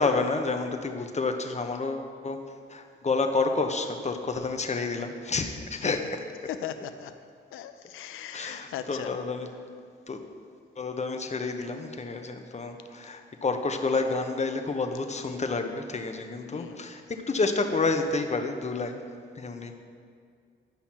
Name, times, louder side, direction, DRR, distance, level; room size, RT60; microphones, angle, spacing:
voice 1, 0.0-2.4 2.7-6.0 8.3-9.5 10.1-10.2 10.8-19.0 19.4-19.7, left 3 dB, 35° left, 5 dB, 0.9 m, -29 dB
voice 2, 6.5-7.1 7.5-9.2 16.5-16.8, left 10 dB, 85° left, 9 dB, 0.5 m, -38 dB
10.5 x 5.7 x 4.3 m, 2.2 s
supercardioid pair, 55°, 21 cm